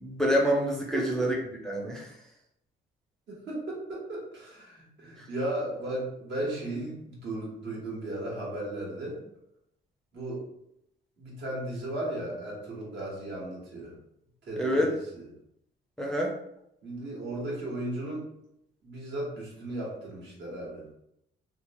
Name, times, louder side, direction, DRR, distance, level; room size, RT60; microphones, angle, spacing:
voice 1, 0.0-1.3 1.7-2.1 5.2-5.3 14.6-14.9 16.0-16.3, equal, ahead, -1 dB, 0.5 m, -27 dB
voice 2, 0.9-1.3 3.3-9.2 10.1-10.4 11.2-13.9 14.5-15.3 16.8-18.3 18.8-20.8, right 1 dB, 65° right, -4 dB, 1.4 m, -35 dB
2.9 x 2.0 x 2.9 m, 0.78 s
cardioid pair, 90°, 20 cm